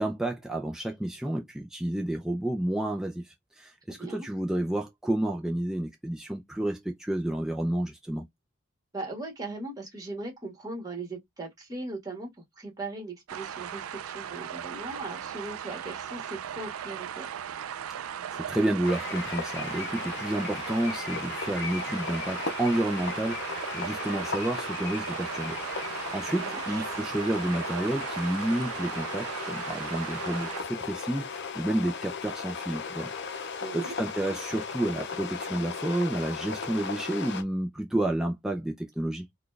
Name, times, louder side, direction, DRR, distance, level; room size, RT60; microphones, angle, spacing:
voice 1, 0.0-8.2 18.3-39.2, right 1 dB, ahead, 0.4 m, -30 dB
voice 2, 3.9-4.3 8.9-12.3 12.6-17.4 26.3-26.8 33.6-33.9, right 2 dB, 20° right, 1.5 m, -39 dB
sound 1, 13.3-30.6, right 9 dB, 90° right, 0.4 m, -37 dB
sound 2, 18.8-37.4, left 5 dB, 55° left, 0.6 m, -37 dB
4.1 x 2.3 x 3.2 m
head